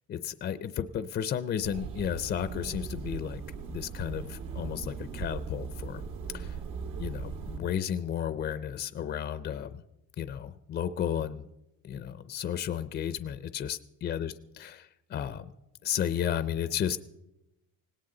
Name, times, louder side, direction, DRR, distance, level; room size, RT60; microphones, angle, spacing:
voice 1, 0.1-3.4 3.7-6.0 6.3-6.6 7.0-9.8 10.2-11.5 11.8-15.5 15.8-17.0, left 9 dB, 35° left, 13 dB, 0.5 m, -33 dB
sound 1, 1.6-7.6, right 6 dB, 80° right, 2.0 m, -39 dB
18.5 x 17.5 x 3.8 m, 0.91 s
cardioid pair, 165°, 33 cm